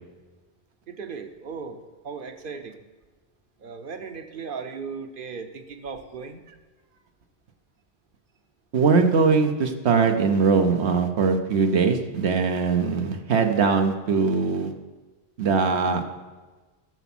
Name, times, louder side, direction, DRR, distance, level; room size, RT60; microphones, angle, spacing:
voice 1, 0.9-2.8 3.6-6.4, right 5 dB, 55° right, 8 dB, 1.0 m, -37 dB
voice 2, 8.7-14.7 15.4-16.0, right 5 dB, 80° right, 6 dB, 1.2 m, -21 dB
13.5 x 7.0 x 6.0 m, 1.3 s
omnidirectional pair, 1.1 m